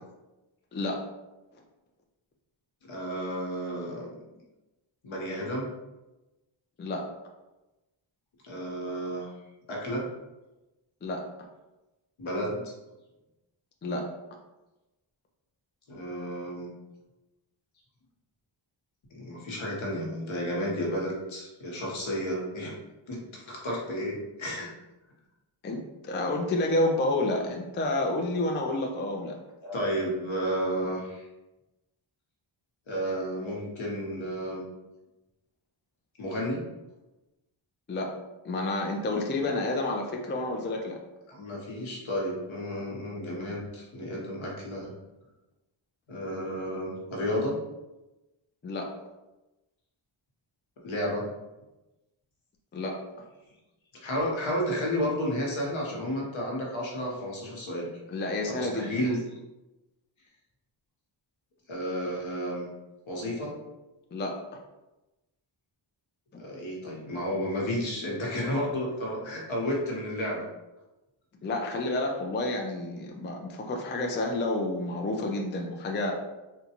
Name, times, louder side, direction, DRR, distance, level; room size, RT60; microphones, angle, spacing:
voice 1, 2.9-4.2 5.0-5.7 8.4-9.3 9.7-10.1 12.2-12.6 15.9-16.7 19.1-22.8 23.1-24.7 29.6-31.2 32.9-34.6 36.2-36.6 41.3-44.9 46.1-47.6 50.8-51.3 54.0-57.9 58.5-59.2 61.7-62.7 63.1-63.5 66.4-70.4, equal, 70° left, -3 dB, 1.0 m, -32 dB
voice 2, 25.6-29.4 37.9-38.1 38.4-41.0 48.6-48.9 52.7-53.0 58.1-59.0 64.1-64.4 71.4-76.1, left 2 dB, 25° left, 1 dB, 0.4 m, -29 dB
3.8 x 2.2 x 2.9 m, 1.0 s
wide cardioid pair, 85°, 49 cm